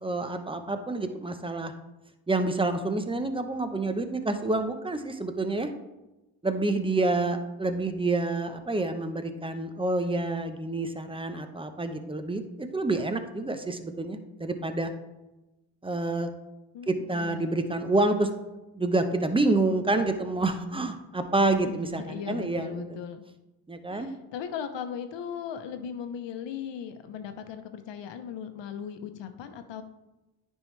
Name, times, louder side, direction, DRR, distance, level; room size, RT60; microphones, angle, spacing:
voice 1, 0.0-1.7 2.3-5.7 6.4-14.9 15.8-16.3 16.9-18.3 18.7-23.0 23.7-24.1, right 2 dB, 10° right, 8 dB, 0.8 m, -28 dB
voice 2, 16.7-17.5 21.6-23.2 23.9-29.8, left 7 dB, 75° left, 7 dB, 0.9 m, -38 dB
9.7 x 5.5 x 3.2 m, 1.0 s
cardioid pair, 75°, 44 cm